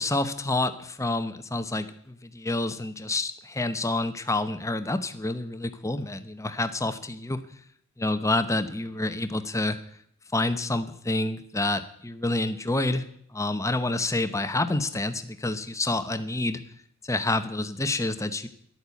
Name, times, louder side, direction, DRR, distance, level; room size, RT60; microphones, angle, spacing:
voice 1, 0.0-7.4 8.0-9.8 10.3-13.0 13.3-16.6 17.0-18.5, left 2 dB, 15° left, 10 dB, 0.9 m, -28 dB
12.0 x 8.7 x 8.4 m, 0.65 s
head